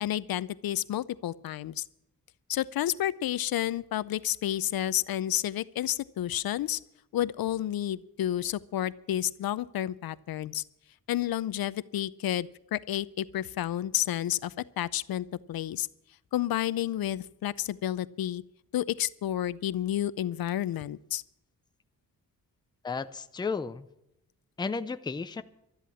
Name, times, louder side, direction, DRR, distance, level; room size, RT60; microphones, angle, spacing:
voice 1, 0.0-1.8 2.5-6.8 7.1-10.6 11.1-15.9 16.3-18.4 18.7-21.2, left 12 dB, 80° left, 18 dB, 0.5 m, -30 dB
voice 2, 22.8-23.9 24.6-25.4, left 4 dB, 10° left, 11 dB, 0.4 m, -33 dB
12.5 x 11.0 x 7.0 m, 0.84 s
wide cardioid pair, 165°, 36 cm